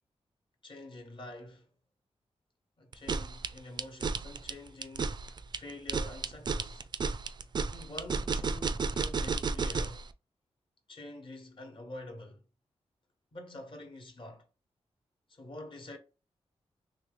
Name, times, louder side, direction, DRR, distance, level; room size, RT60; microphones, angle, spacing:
voice 1, 0.6-1.7 2.8-5.1 5.6-6.8 7.7-10.0 10.9-12.4 13.3-14.4 15.3-16.0, left 1 dB, 50° left, 1.1 m, -46 dB
sound 1, 2.9-10.0, right 4 dB, 40° right, 0.4 m, -32 dB
3.0 x 3.0 x 3.6 m
cardioid pair, 75°, 11 cm